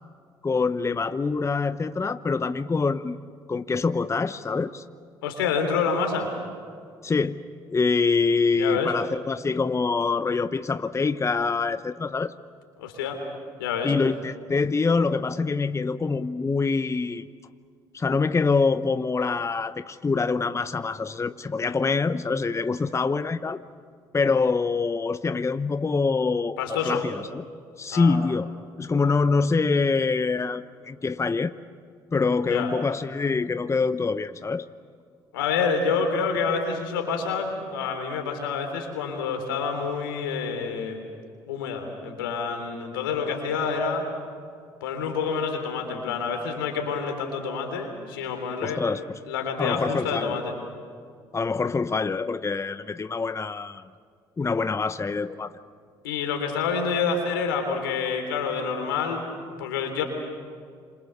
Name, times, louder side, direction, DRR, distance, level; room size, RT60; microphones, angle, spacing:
voice 1, 0.4-3.2 3.5-4.8 7.0-7.4 7.7-12.4 13.8-17.3 17.9-23.6 24.1-27.4 27.8-28.5 28.8-31.5 32.1-34.7 48.6-49.2 49.6-50.4 51.3-53.8 54.4-55.5, left 4 dB, 25° left, 12 dB, 0.9 m, -25 dB
voice 2, 5.2-6.3 8.5-8.9 12.8-13.2 13.6-13.9 26.6-27.0 27.9-28.2 32.5-32.7 35.3-41.0 41.5-44.1 44.8-48.8 49.3-50.5 56.0-59.2 59.6-60.0, left 5 dB, 90° left, 4 dB, 3.5 m, -27 dB
27.5 x 26.5 x 6.8 m, 2.2 s
hypercardioid pair, 55°, 11 cm